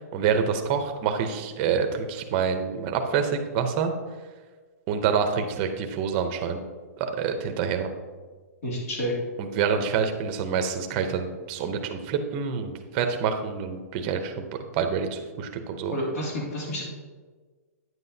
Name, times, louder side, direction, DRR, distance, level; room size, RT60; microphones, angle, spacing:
voice 1, 0.1-3.9 4.9-6.6 7.0-7.9 9.4-14.5 14.7-15.9, right 6 dB, 25° right, 6 dB, 0.7 m, -27 dB
voice 2, 8.6-9.1 15.9-16.8, equal, 65° left, -3 dB, 2.5 m, -29 dB
9.3 x 7.6 x 2.7 m, 1.4 s
hypercardioid pair, 165°, 9 cm